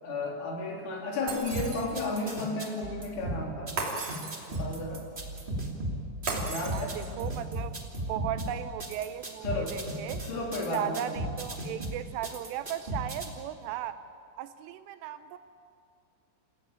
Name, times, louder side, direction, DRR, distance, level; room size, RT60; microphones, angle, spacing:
voice 1, 0.0-3.8 4.5-5.1 6.5-6.9 9.4-9.8 10.3-11.2, left 2 dB, 65° left, 0 dB, 5.7 m, -33 dB
Shatter, 1.3-2.2 3.8-4.8 6.3-7.3, right 3 dB, 35° right, 3.6 m, -36 dB
sound 1, 1.5-13.2, right 1 dB, 20° right, 1.4 m, -36 dB
voice 2, 6.7-7.7 8.1-10.2 10.7-14.0 14.4-15.4, right 11 dB, 80° right, 11 dB, 3.1 m, -36 dB
29.0 x 16.5 x 8.9 m, 2.5 s
omnidirectional pair, 5.9 m